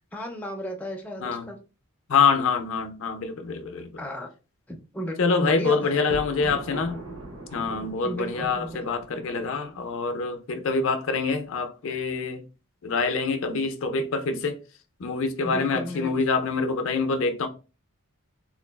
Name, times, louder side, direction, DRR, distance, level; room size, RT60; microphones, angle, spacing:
voice 1, 0.1-1.6 4.0-4.3 4.7-6.0 8.0-8.8 15.4-16.2, equal, 5° left, 0.4 m, -34 dB
voice 2, 2.1-3.9 5.2-7.0 7.5-12.4 12.8-14.6 15.0-17.5, left 4 dB, 65° left, 0.5 m, -25 dB
Thunder, 5.9-10.0, right 1 dB, 60° right, 0.8 m, -40 dB
3.7 x 2.3 x 2.2 m
head